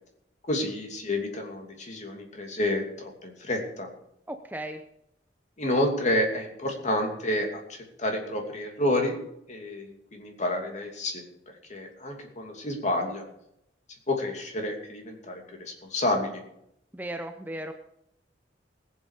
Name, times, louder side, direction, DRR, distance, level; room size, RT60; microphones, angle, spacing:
voice 1, 0.5-3.9 5.6-9.2 9.5-11.2 11.7-13.3 14.1-16.4, left 1 dB, 40° left, 3 dB, 2.7 m, -29 dB
voice 2, 4.3-4.8 16.9-17.7, right 1 dB, 10° right, 7 dB, 0.7 m, -36 dB
20.0 x 7.9 x 5.0 m, 0.76 s
head